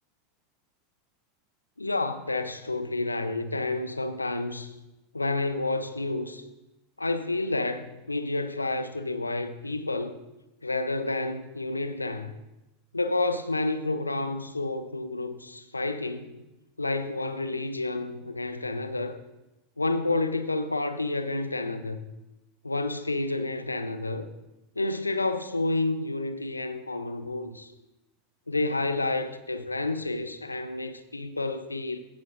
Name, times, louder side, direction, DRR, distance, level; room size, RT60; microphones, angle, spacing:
voice 1, 1.8-4.7 5.1-6.5 7.0-10.2 10.6-12.3 12.9-16.4 16.8-19.2 19.8-22.1 22.6-24.3 24.8-27.7 28.5-32.0, left 2 dB, 85° left, 0.7 m, -30 dB
15.5 x 8.5 x 2.6 m
figure-of-eight pair, 85°, 0 cm